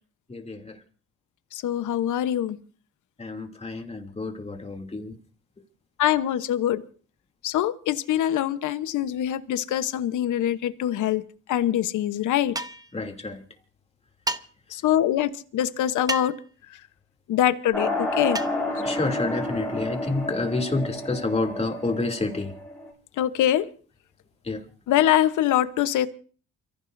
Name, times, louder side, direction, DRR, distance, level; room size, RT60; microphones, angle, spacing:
voice 1, 0.3-0.8 3.2-5.2 12.9-13.4 18.8-22.6 24.4-24.6, left 3 dB, 20° left, 2.9 m, -29 dB
voice 2, 1.5-2.6 6.0-6.8 7.4-11.2 11.5-12.5 14.7-16.3 17.3-18.4 23.2-23.7 24.9-26.1, left 11 dB, 80° left, 1.0 m, -24 dB
sound 1, 12.6-12.9 14.3-14.4 16.1-16.4 18.3-18.6, right 2 dB, 10° right, 1.0 m, -30 dB
sound 2, 17.7-22.9, left 1 dB, 5° left, 6.0 m, -30 dB
29.0 x 15.0 x 2.7 m
cardioid pair, 90°, 30 cm